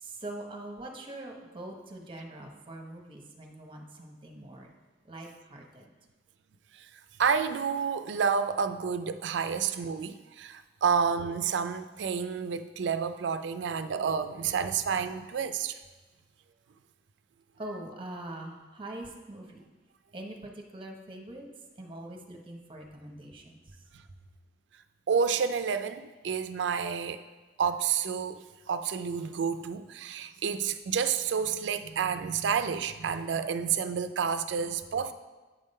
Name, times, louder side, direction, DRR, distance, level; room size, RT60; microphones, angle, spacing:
voice 1, 0.0-4.7 5.1-5.9 9.5-9.6 17.6-19.6 20.1-21.4 21.8-23.6, right 1 dB, 30° right, 2 dB, 0.9 m, -43 dB
voice 2, 7.2-15.8 25.1-27.2 27.6-35.1, right 6 dB, 90° right, 10 dB, 0.4 m, -29 dB
8.7 x 3.7 x 5.4 m, 1.2 s
head